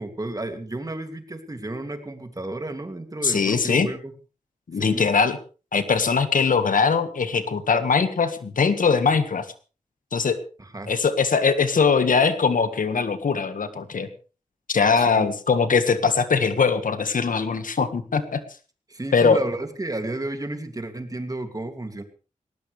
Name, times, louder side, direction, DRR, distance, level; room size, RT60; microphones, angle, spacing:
voice 1, 0.0-4.1 4.7-5.1 10.6-10.9 15.0-15.3 18.9-22.0, right 2 dB, 25° right, 6 dB, 2.7 m, -32 dB
voice 2, 3.2-3.9 4.7-5.4 5.7-9.5 10.1-10.4 10.9-14.1 14.7-18.4 19.1-19.4, left 5 dB, 85° left, 10 dB, 1.7 m, -21 dB
19.0 x 19.0 x 3.4 m, 0.36 s
wide cardioid pair, 95°, 14 cm